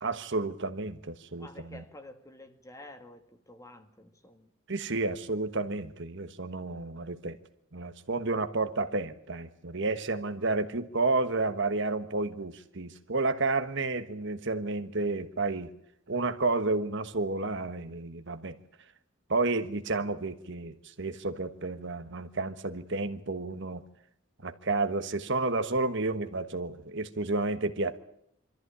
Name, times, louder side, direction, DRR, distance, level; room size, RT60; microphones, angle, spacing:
voice 1, 0.0-1.8 4.7-7.4 7.7-15.7 16.1-18.6 19.3-23.8 24.4-28.0, right 3 dB, 60° right, 1.4 m, -31 dB
voice 2, 1.4-4.5 6.5-6.6, left 1 dB, 15° left, 1.8 m, -50 dB
24.5 x 14.0 x 9.8 m
head